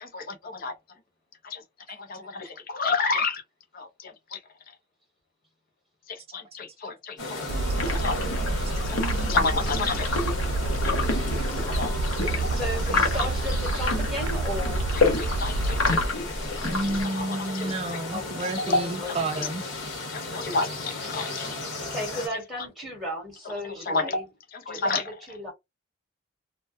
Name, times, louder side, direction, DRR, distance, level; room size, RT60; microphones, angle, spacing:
voice 1, 0.0-0.7 1.4-1.6 2.0-3.4 3.7-4.4 6.1-7.4 7.9-8.2 8.9-10.1 10.8-10.9 11.6-11.9 12.4-13.1 14.9-16.0 17.1-17.3 17.6-17.7 18.7-18.8 19.4-19.5 20.1-21.5 23.9-24.2 24.5-25.0, left 3 dB, 45° left, 0.6 m, -30 dB
sound 1, 7.2-22.3, left 2 dB, 70° left, 1.2 m, -35 dB
sound 2, 7.5-16.1, right 2 dB, 90° right, 0.4 m, -29 dB
sound 3, 7.8-17.0, left 3 dB, 85° left, 0.7 m, -29 dB
voice 2, 11.2-11.5 12.4-15.0 18.1-19.2 21.1-21.6 21.9-24.3 24.7-25.5, equal, ahead, 1.1 m, -35 dB
voice 3, 16.6-19.6 24.8-24.9, right 2 dB, 30° right, 0.5 m, -30 dB
2.2 x 2.2 x 2.6 m
head